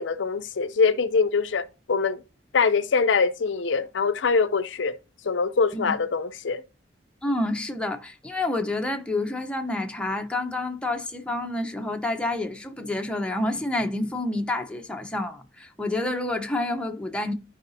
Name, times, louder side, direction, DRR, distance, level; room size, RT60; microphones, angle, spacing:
voice 1, 0.0-2.2 2.5-4.9 5.2-6.6, left 5 dB, 75° left, 0.5 m, -23 dB
voice 2, 7.2-17.3, left 2 dB, 5° left, 0.7 m, -28 dB
13.5 x 4.8 x 2.7 m
head